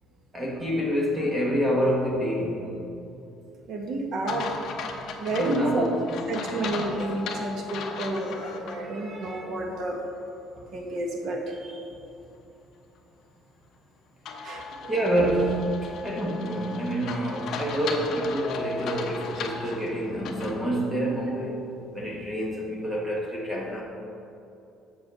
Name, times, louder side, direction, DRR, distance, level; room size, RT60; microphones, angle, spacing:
voice 1, 0.3-2.8 5.3-6.3 10.6-10.7 14.4-14.5 14.9-21.6 21.9-23.8, equal, 10° right, -2 dB, 1.2 m, -27 dB
voice 2, 3.7-4.5 5.2-5.8 6.3-10.0 10.7-11.8 14.4-14.9, right 2 dB, 45° right, 1 dB, 1.4 m, -30 dB
sound 1, 4.3-8.8 9.2-9.3 14.3-20.6, left 5 dB, 45° left, 0.9 m, -36 dB
8.2 x 6.2 x 6.1 m, 2.7 s
cardioid pair, 175°, 0 cm